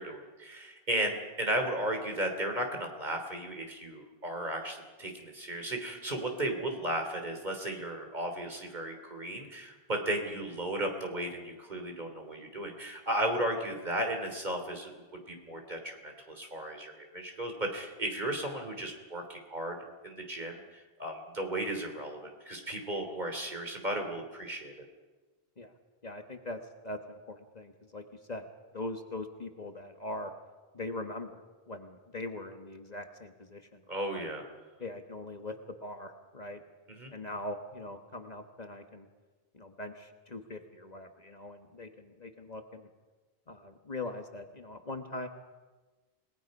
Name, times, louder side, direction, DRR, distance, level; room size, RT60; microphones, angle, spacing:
voice 1, 0.0-19.8 20.0-24.7 33.9-34.5 36.9-37.1, right 1 dB, 45° right, 4 dB, 3.4 m, -35 dB
voice 2, 26.0-26.6 26.8-28.0 28.3-28.4 28.7-30.3 30.7-31.4 31.7-33.8 34.1-34.3 34.8-36.6 37.1-39.1 39.5-42.9 43.5-45.3, left 2 dB, 40° left, 6 dB, 1.5 m, -41 dB
28.0 x 19.5 x 5.4 m, 1.3 s
omnidirectional pair, 1.0 m